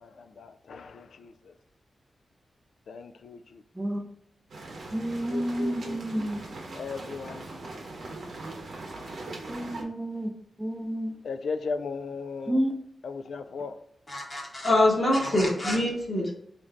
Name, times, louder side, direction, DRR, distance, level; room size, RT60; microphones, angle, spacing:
voice 1, 0.0-1.3 2.9-3.6 5.3-6.3 6.7-7.4 11.2-12.6 13.0-13.8, left 4 dB, 75° left, 10 dB, 0.3 m, -36 dB
sound 1, 4.5-9.8, right 2 dB, 60° right, 0.8 m, -41 dB
voice 2, 4.9-6.4 9.5-10.3 10.6-11.1 12.5-12.7, right 1 dB, 5° right, 2 dB, 0.6 m, -30 dB
voice 3, 14.1-16.3, left 1 dB, 30° left, -3 dB, 1.0 m, -24 dB
3.7 x 2.6 x 3.3 m, 0.74 s
wide cardioid pair, 150°, 0 cm